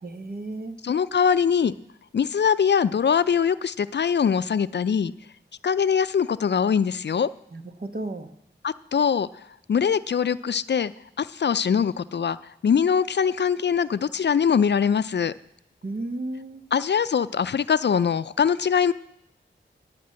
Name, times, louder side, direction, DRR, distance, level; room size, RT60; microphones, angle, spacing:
voice 1, 0.0-0.7 7.5-8.3 15.8-16.6, right 2 dB, 50° right, 7 dB, 1.1 m, -33 dB
voice 2, 0.8-1.7 2.1-5.1 5.6-7.3 8.6-9.3 9.7-10.9 11.2-12.4 12.6-15.3 16.7-18.9, left 7 dB, 65° left, 15 dB, 0.4 m, -22 dB
11.5 x 6.0 x 7.5 m, 0.81 s
cardioid pair, 40°, 20 cm